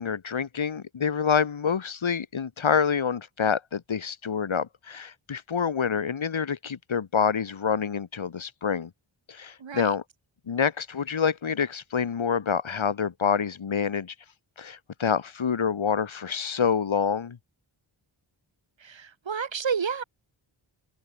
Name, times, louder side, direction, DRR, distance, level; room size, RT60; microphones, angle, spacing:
voice 1, 0.0-8.9 9.3-10.0 10.5-14.1 14.6-17.4, left 6 dB, 80° left, 5.7 m, -27 dB
voice 2, 9.6-9.9 18.8-20.0, right 6 dB, 70° right, 4.8 m, -30 dB
wide cardioid pair, 150°, 47 cm